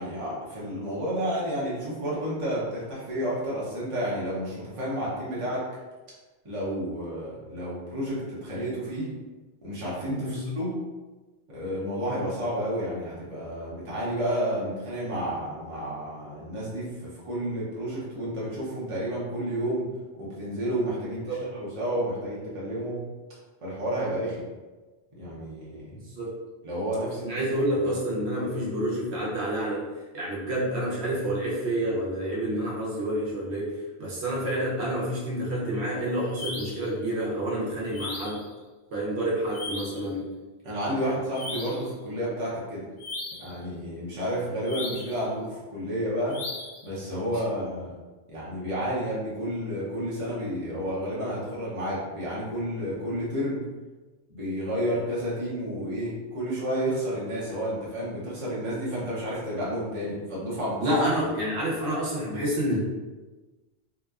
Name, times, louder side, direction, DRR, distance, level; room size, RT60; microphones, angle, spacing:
voice 1, 0.0-5.7 6.4-9.1 9.6-10.8 11.5-19.9 20.2-23.0 23.6-24.4 25.2-26.0 26.6-27.3 40.6-42.8 43.4-46.4 46.8-47.9 48.3-53.6 54.3-60.8, equal, 30° right, -7 dB, 0.8 m, -31 dB
voice 2, 21.0-21.5 25.9-26.3 27.2-29.9 30.1-38.4 38.9-40.3 60.8-62.8, right 1 dB, 70° right, -6 dB, 0.9 m, -28 dB
sound 1, 36.3-36.9 37.9-38.5 39.5-40.1 41.3-41.9 43.0-43.5 44.6-45.2 46.3-46.9, left 2 dB, 60° left, 0.6 m, -37 dB
2.8 x 2.1 x 2.3 m, 1.2 s
omnidirectional pair, 1.2 m